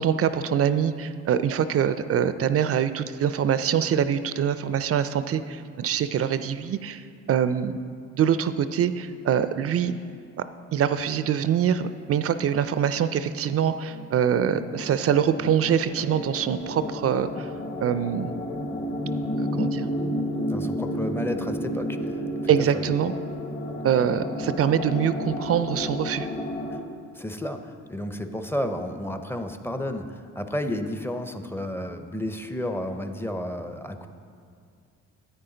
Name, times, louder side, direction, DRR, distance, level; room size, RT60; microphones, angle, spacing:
voice 1, 0.0-7.8 8.1-9.9 10.7-17.5 17.8-18.3 19.4-19.9 22.5-23.1 23.8-26.3, right 8 dB, 50° right, 12 dB, 0.4 m, -24 dB
sound 1, 13.3-13.4 13.7-26.8, left 1 dB, 40° left, 1.2 m, -31 dB
voice 2, 20.5-22.8 26.7-26.8 27.1-34.1, left 1 dB, 10° left, 7 dB, 0.6 m, -32 dB
10.0 x 8.7 x 3.9 m, 2.4 s
cardioid pair, 90°, 30 cm